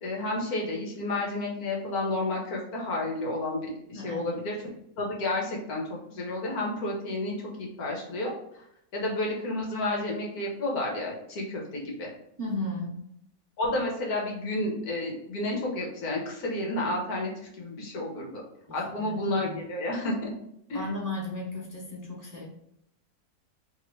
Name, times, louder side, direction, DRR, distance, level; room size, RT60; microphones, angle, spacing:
voice 1, 0.0-4.6 5.0-8.6 8.9-12.1 13.6-17.3 17.6-18.4 18.7-20.3 20.7-20.8, left 2 dB, 90° left, -2 dB, 1.7 m, -31 dB
voice 2, 3.9-4.4 12.4-13.0 18.7-19.1 19.4-19.6 20.7-22.4, left 2 dB, 15° right, -3 dB, 0.7 m, -35 dB
3.3 x 3.1 x 4.6 m, 0.75 s
omnidirectional pair, 1.5 m